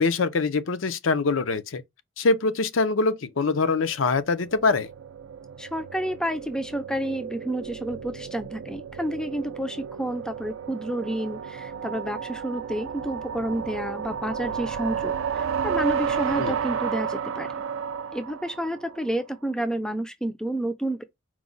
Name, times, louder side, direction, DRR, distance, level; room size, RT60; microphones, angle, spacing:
voice 1, 0.0-1.8 2.2-4.9 16.4-16.5, left 3 dB, 75° left, 0.5 m, -24 dB
sound 1, 3.9-19.1, right 7 dB, 80° right, 0.3 m, -32 dB
voice 2, 5.6-17.6 18.1-21.0, right 1 dB, 5° left, 0.3 m, -30 dB
4.7 x 2.1 x 3.8 m
head